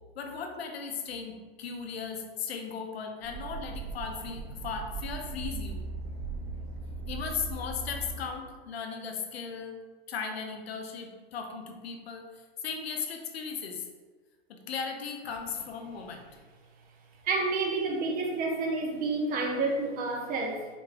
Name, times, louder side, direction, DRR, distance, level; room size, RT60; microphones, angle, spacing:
voice 1, 0.1-5.8 7.1-9.8 10.1-12.3 12.6-13.9 14.5-16.3, left 6 dB, 85° left, 4 dB, 0.7 m, -37 dB
sound 1, 3.2-8.2, right 3 dB, 85° right, 1.5 m, -38 dB
voice 2, 17.2-20.7, right 3 dB, 30° right, 3 dB, 0.6 m, -29 dB
5.1 x 3.2 x 2.5 m, 1.4 s
hypercardioid pair, 120°, 30 cm